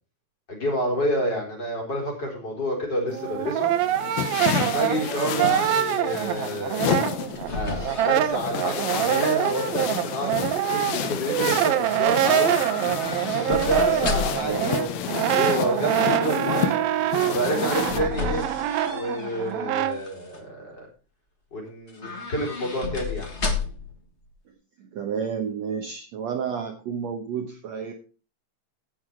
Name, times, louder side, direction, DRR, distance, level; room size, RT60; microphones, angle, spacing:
voice 1, 0.5-3.7 4.6-7.0 7.5-12.6 13.3-16.8 17.2-18.5 18.9-20.9 21.5-23.3, equal, 30° left, -1 dB, 4.4 m, -28 dB
sound 1, 3.1-18.0, left 9 dB, 85° left, 2.9 m, -31 dB
Brass instrument, 3.1-7.5 7.8-20.0, right 12 dB, 90° right, 2.7 m, -25 dB
sound 2, 7.3-9.4 9.7-10.3 12.5-14.6 17.4-19.5 19.9-20.4 21.9-24.0 24.2-24.3, left 4 dB, 65° left, 0.6 m, -33 dB
voice 2, 14.4-14.8 24.8-27.9, right 6 dB, 65° right, 5 dB, 1.9 m, -31 dB
16.0 x 6.4 x 4.6 m, 0.36 s
omnidirectional pair, 4.1 m